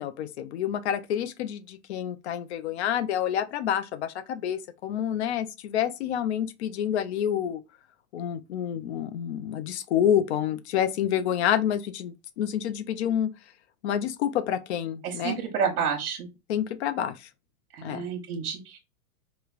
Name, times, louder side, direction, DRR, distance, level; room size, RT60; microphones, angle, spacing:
voice 1, 0.0-7.6 8.1-13.3 13.8-15.4 16.5-17.3 17.8-18.0, left 10 dB, 50° left, 0.5 m, -28 dB
voice 2, 15.0-16.3 17.7-18.8, right 6 dB, 75° right, 1.1 m, -29 dB
4.8 x 2.2 x 2.4 m
supercardioid pair, 155°, 45 cm